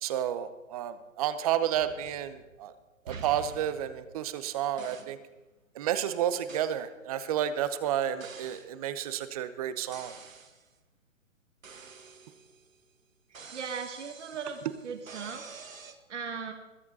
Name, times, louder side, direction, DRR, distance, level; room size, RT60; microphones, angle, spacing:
voice 1, 0.0-2.7 3.1-5.2 5.7-10.2, right 10 dB, 30° right, 13 dB, 0.8 m, -31 dB
sound 1, 1.7-2.7 3.1-4.4 4.8-5.2 6.5-6.8 8.2-8.7 9.9-10.7 11.6-12.7 13.3-15.9, right 5 dB, 85° right, 1.9 m, -48 dB
voice 2, 13.3-16.5, right 6 dB, 60° right, 4 dB, 2.0 m, -39 dB
21.5 x 8.3 x 4.1 m, 1.1 s
hypercardioid pair, 140°, 39 cm